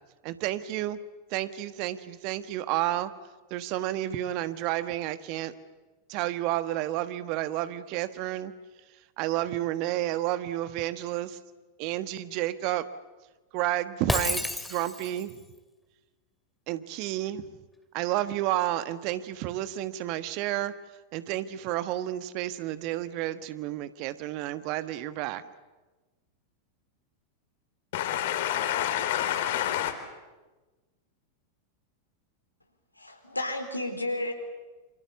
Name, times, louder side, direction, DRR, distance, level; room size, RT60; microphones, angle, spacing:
voice 1, 0.2-1.0 1.3-3.1 3.5-5.5 6.1-8.5 9.2-11.4 11.8-12.8 13.5-15.4 16.7-17.5 17.9-20.7 21.1-25.4, right 14 dB, 45° right, 13 dB, 1.3 m, -31 dB
Shatter, 14.1-15.3, left 2 dB, 5° left, 2.2 m, -30 dB
voice 2, 27.9-29.9, left 11 dB, 55° left, 9 dB, 3.6 m, -28 dB
voice 3, 32.9-34.3, left 1 dB, 85° left, 4 dB, 3.9 m, -32 dB
28.0 x 26.5 x 7.2 m, 1.2 s
figure-of-eight pair, 90°, 0 cm